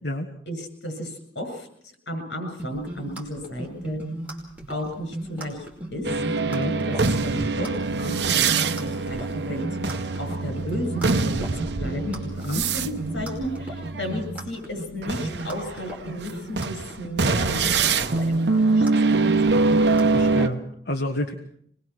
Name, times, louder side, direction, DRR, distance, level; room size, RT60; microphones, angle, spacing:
voice 1, 0.5-4.0 4.7-5.7 5.9-6.2 6.6-7.0 7.2-19.2 19.4-19.6, equal, 75° left, 5 dB, 7.8 m, -34 dB
sound 1, 2.6-20.5, right 1 dB, 10° right, 5.1 m, -35 dB
sound 2, 6.0-14.5 15.0-20.5, right 3 dB, 65° right, 0.9 m, -24 dB
voice 2, 20.1-21.3, left 1 dB, 60° left, 3 dB, 1.6 m, -29 dB
25.5 x 20.5 x 6.2 m, 0.68 s
head